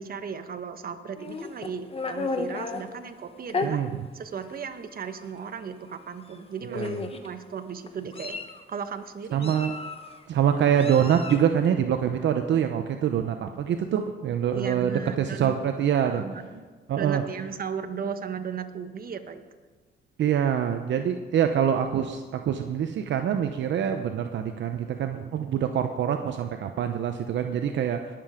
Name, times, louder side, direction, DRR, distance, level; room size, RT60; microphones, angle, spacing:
voice 1, 0.0-3.8 4.1-8.4 8.7-9.6 14.5-15.6 16.0-16.6 17.0-19.5, right 6 dB, 50° right, 8 dB, 1.1 m, -36 dB
Meow, 1.2-2.8 3.5-3.7 4.5-4.7 5.0-5.2 6.3-6.4 6.7-7.3 7.9-8.6 9.4-10.2 10.8-11.5, left 4 dB, 30° left, 1.2 m, -33 dB
voice 2, 3.6-4.0 6.7-7.0 9.3-9.7 10.3-16.2 16.9-17.2 20.2-28.2, right 8 dB, 65° right, 7 dB, 0.8 m, -25 dB
20.0 x 7.7 x 5.0 m, 1.4 s
cardioid pair, 90°, 20 cm